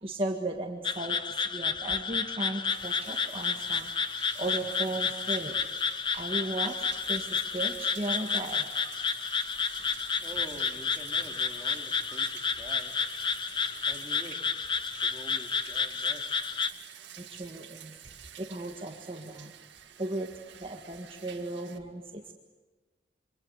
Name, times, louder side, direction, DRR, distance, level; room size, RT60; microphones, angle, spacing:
voice 1, 0.0-3.9 4.4-5.5 6.1-8.6 17.2-17.9 18.4-19.5 20.0-20.3 20.6-22.3, right 2 dB, 30° right, 2 dB, 1.7 m, -36 dB
sound 1, 0.8-16.7, left 6 dB, 25° left, 0.9 m, -31 dB
Bathtub (filling or washing), 2.7-21.8, right 10 dB, 85° right, 2.1 m, -49 dB
voice 2, 9.8-16.7, right 1 dB, 5° right, 0 dB, 3.0 m, -48 dB
27.5 x 25.0 x 8.1 m, 1.2 s
head